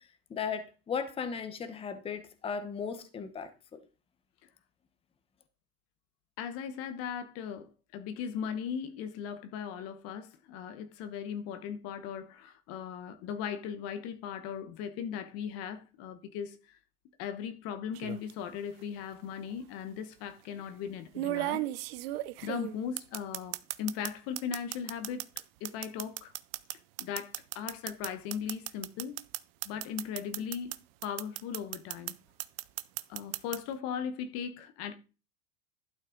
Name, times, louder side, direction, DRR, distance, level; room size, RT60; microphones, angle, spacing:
voice 1, 0.3-3.8, left 6 dB, 20° left, 1.0 m, -36 dB
voice 2, 6.4-7.7 7.9-16.6 17.2-21.6 22.4-25.3 25.6-26.3 26.7-29.2 29.6-30.8 31.0-32.1 33.1-34.9, left 8 dB, 50° left, 1.1 m, -38 dB
sound 1, 17.9-18.3 19.5-19.6 21.1-24.1 24.4-30.8 31.0-32.1 32.4-33.6, right 17 dB, 75° right, 0.7 m, -35 dB
12.0 x 6.4 x 3.8 m
supercardioid pair, 140°, 30 cm